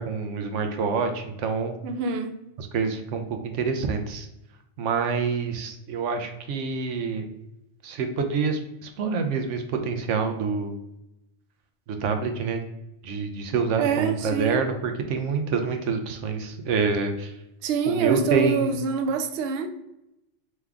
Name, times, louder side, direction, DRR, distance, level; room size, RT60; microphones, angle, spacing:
voice 1, 0.0-1.7 2.6-4.3 4.8-7.3 7.8-10.7 11.9-12.6 13.0-17.3 17.9-18.7, right 5 dB, 90° right, 5 dB, 1.0 m, -27 dB
voice 2, 1.8-2.3 13.8-14.7 17.6-19.7, right 6 dB, 65° right, 6 dB, 0.7 m, -26 dB
3.5 x 3.2 x 3.4 m, 0.87 s
omnidirectional pair, 1.2 m